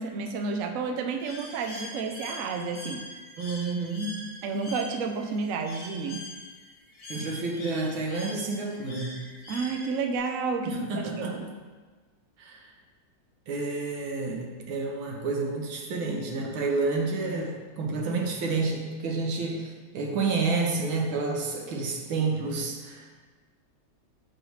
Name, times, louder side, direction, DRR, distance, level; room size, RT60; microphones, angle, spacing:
voice 1, 0.0-3.1 4.4-6.2 9.5-11.4, right 4 dB, 70° right, 4 dB, 0.7 m, -31 dB
Bird, 1.2-10.2, left 1 dB, 75° left, 3.3 m, -43 dB
voice 2, 3.4-4.1 7.1-9.2 10.7-11.5 12.4-12.7 13.5-23.2, right 3 dB, 85° right, 1 dB, 1.9 m, -30 dB
8.6 x 6.4 x 3.3 m, 1.4 s
omnidirectional pair, 2.2 m